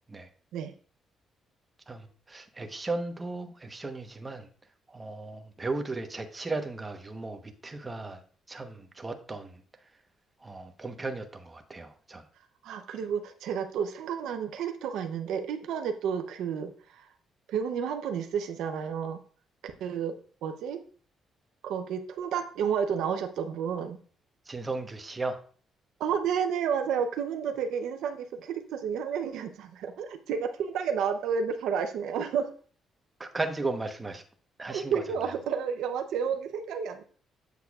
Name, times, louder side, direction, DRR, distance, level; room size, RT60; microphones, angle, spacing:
voice 1, 1.9-4.5 4.9-8.2 8.5-9.6 10.4-12.2 24.5-25.4 33.2-34.2 34.6-35.0, right 3 dB, 20° right, 6 dB, 1.0 m, -36 dB
voice 2, 12.6-17.1 17.5-19.2 19.6-20.2 20.4-20.8 21.6-24.0 26.0-32.5 34.6-37.0, right 7 dB, 85° right, 7 dB, 0.7 m, -31 dB
8.1 x 6.7 x 2.4 m, 0.44 s
cardioid pair, 90°, 0 cm